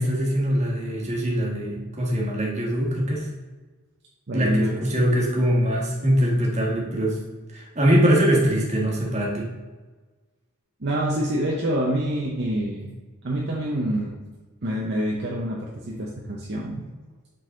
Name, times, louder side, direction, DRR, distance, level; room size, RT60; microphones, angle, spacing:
voice 1, 0.0-3.3 4.3-7.2 7.5-9.5, equal, 30° right, -3 dB, 1.5 m, -22 dB
voice 2, 4.3-5.1 10.8-12.9 13.2-14.2 14.6-16.9, right 1 dB, 50° right, -3 dB, 0.8 m, -26 dB
7.6 x 4.0 x 3.8 m, 1.3 s
head